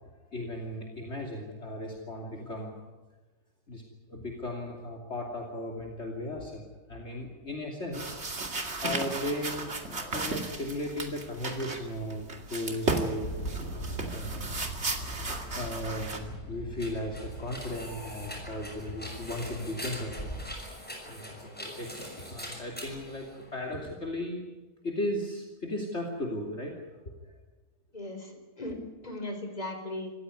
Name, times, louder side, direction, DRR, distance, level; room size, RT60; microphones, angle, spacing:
voice 1, 0.0-2.9 3.7-8.3 8.8-13.3 14.1-14.6 15.5-20.3 21.1-24.4 24.8-26.7 27.0-27.4, left 1 dB, 45° left, 0 dB, 3.1 m, -36 dB
sound 1, 7.9-16.2, right 2 dB, 45° right, 2.7 m, -35 dB
sound 2, 13.2-20.6, right 1 dB, 65° left, 5.5 m, -41 dB
sound 3, 16.2-23.9, equal, 5° left, 6.1 m, -43 dB
voice 2, 27.9-30.1, left 1 dB, 25° left, 5 dB, 4.1 m, -38 dB
26.5 x 15.5 x 9.6 m, 1.2 s
omnidirectional pair, 1.6 m